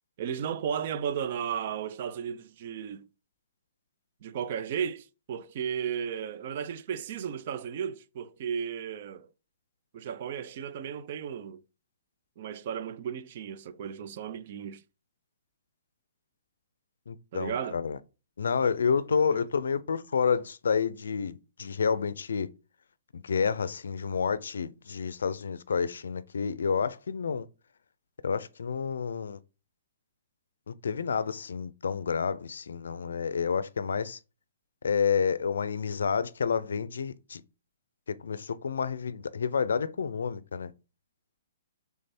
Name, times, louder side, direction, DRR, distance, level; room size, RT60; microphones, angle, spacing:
voice 1, 0.2-3.1 4.2-9.3 9.9-11.6 12.4-14.8 17.3-17.8 19.3-19.5, right 8 dB, 45° right, 0.4 m, -34 dB
voice 2, 17.1-18.0 18.4-22.5 23.1-27.5 28.2-29.4 30.7-34.2 34.8-37.4 38.1-40.7, left 6 dB, 85° left, 0.4 m, -29 dB
3.4 x 3.3 x 4.2 m
hypercardioid pair, 155°, 0 cm